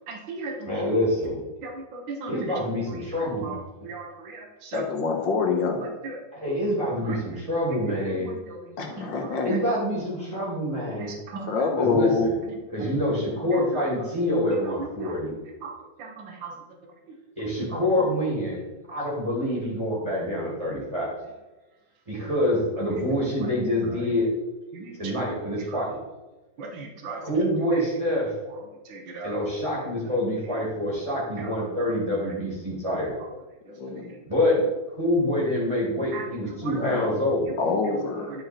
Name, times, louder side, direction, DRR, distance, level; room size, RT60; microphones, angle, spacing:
voice 1, 0.1-0.8 1.6-2.3 3.4-3.6 3.8-4.9 6.0-6.1 7.1-7.2 9.0-9.1 11.0-11.5 14.8-15.1 15.6-15.7 16.0-16.5 24.7-25.0 26.6-27.2 28.9-29.3 31.4-31.5 36.1-36.2, right 3 dB, 80° right, 2 dB, 1.8 m, -37 dB
voice 2, 0.6-1.4 2.3-3.6 6.3-8.3 9.4-11.1 11.8-12.3 12.7-15.3 17.4-18.6 18.9-21.1 22.1-24.3 25.0-26.0 27.1-28.3 29.2-33.1 34.3-34.6 35.0-37.4, left 1 dB, 15° right, -5 dB, 2.4 m, -26 dB
voice 3, 4.7-5.9 8.8-9.6 11.5-12.3 23.0-23.4 33.7-34.1 36.7-37.1 37.6-38.3, left 4 dB, 75° left, 2 dB, 2.0 m, -26 dB
11.5 x 5.0 x 4.4 m, 1.1 s
omnidirectional pair, 2.1 m